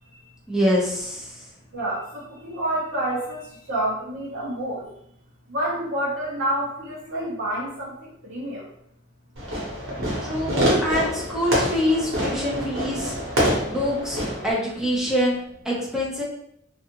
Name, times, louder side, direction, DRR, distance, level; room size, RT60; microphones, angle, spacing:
voice 1, 0.5-1.4 10.2-13.2 13.6-16.2, equal, 5° right, -5 dB, 0.6 m, -25 dB
voice 2, 1.7-4.9 5.5-8.6, right 1 dB, 70° right, -8 dB, 0.7 m, -28 dB
Fireworks, 9.4-14.5, equal, 85° right, 1.0 m, -25 dB
2.4 x 2.4 x 2.8 m, 0.73 s
head